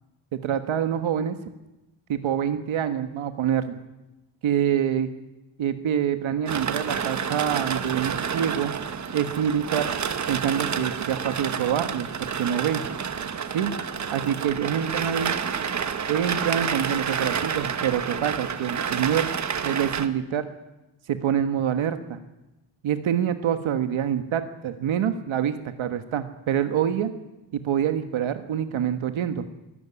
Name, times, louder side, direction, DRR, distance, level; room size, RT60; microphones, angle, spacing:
voice 1, 0.3-1.4 2.1-3.8 4.4-5.1 5.6-8.7 9.1-9.9 10.3-12.8 13.5-13.7 14.1-15.3 16.1-19.3 19.6-20.4 21.1-22.2 22.8-27.1 27.5-29.5, right 9 dB, 75° right, 9 dB, 1.5 m, -26 dB
sound 1, 6.5-20.1, right 7 dB, 35° right, 1.1 m, -29 dB
22.5 x 13.0 x 9.8 m, 0.99 s
wide cardioid pair, 175°, 48 cm